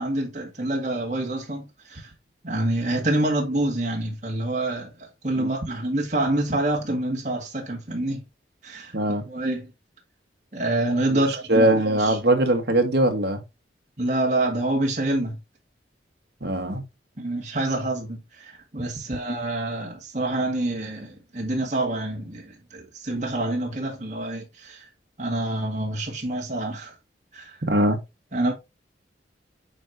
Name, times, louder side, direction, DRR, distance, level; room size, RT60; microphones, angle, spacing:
voice 1, 0.0-2.1 2.4-8.2 8.6-9.0 9.2-9.7 10.5-12.2 14.0-15.4 17.2-24.9 25.2-26.9 27.3-27.6 28.3-28.5, right 1 dB, 40° right, 1.9 m, -27 dB
voice 2, 8.9-9.2 11.5-13.4 16.4-16.8 27.7-28.0, right 1 dB, 60° right, 1.5 m, -21 dB
8.8 x 4.6 x 2.8 m
head